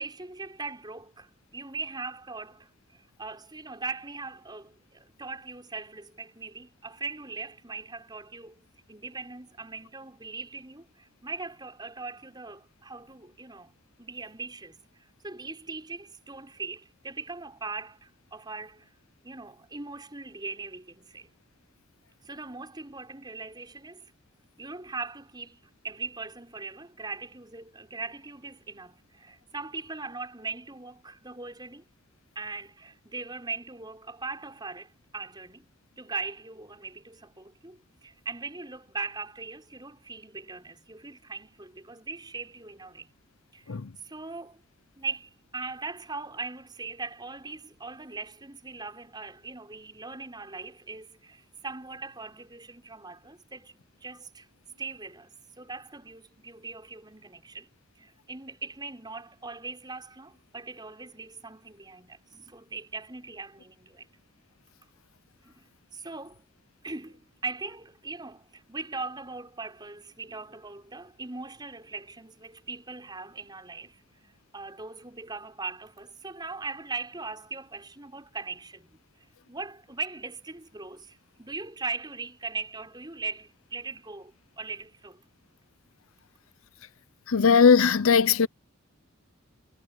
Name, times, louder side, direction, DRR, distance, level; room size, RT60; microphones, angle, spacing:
voice 1, 0.0-8.6 8.9-13.7 14.0-18.9 19.2-21.3 22.2-24.1 24.6-31.8 32.3-35.7 36.0-43.1 43.5-43.8 44.0-44.6 45.0-53.7 54.0-54.5 54.8-55.3 55.6-57.7 58.0-64.1 65.4-66.4 66.8-74.0 74.5-85.2, right 4 dB, 20° right, 6.0 m, -40 dB
voice 2, 87.3-88.5, left 6 dB, 80° left, 0.7 m, -19 dB
head